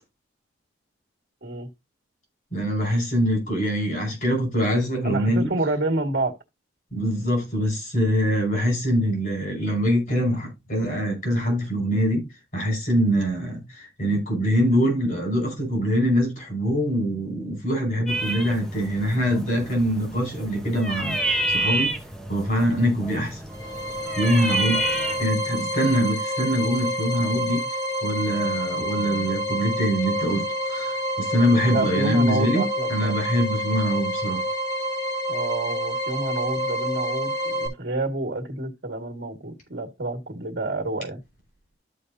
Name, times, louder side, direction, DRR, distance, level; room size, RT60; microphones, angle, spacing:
voice 1, 2.5-5.5 6.9-12.3 12.5-21.9 22.3-23.4 24.1-24.8 25.2-27.6 28.0-34.4, equal, 45° left, 5.5 m, -24 dB
voice 2, 5.0-6.4 31.7-33.1 35.3-41.2, right 2 dB, 60° right, 1.8 m, -28 dB
sound 1, 18.1-25.3, right 1 dB, 5° left, 0.9 m, -29 dB
sound 2, 23.5-37.7, equal, 20° left, 2.2 m, -28 dB
13.5 x 5.2 x 2.7 m
head